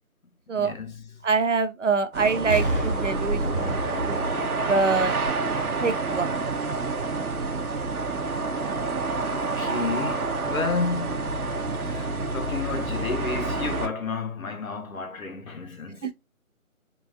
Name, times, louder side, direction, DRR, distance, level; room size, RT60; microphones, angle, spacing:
voice 1, 0.5-1.1 8.6-8.8 9.3-11.4 11.7-16.1, left 4 dB, 70° left, 0.8 m, -32 dB
voice 2, 1.2-3.8 4.1-4.2 4.7-5.2 5.8-6.5 16.0-16.1, right 4 dB, 60° right, 0.5 m, -25 dB
sound 1, 2.1-13.9, right 3 dB, 85° right, 0.8 m, -28 dB
Explosion, 2.5-6.4 6.9-7.0, right 1 dB, 40° left, 0.7 m, -31 dB
3.8 x 2.4 x 2.4 m
figure-of-eight pair, 175°, 43 cm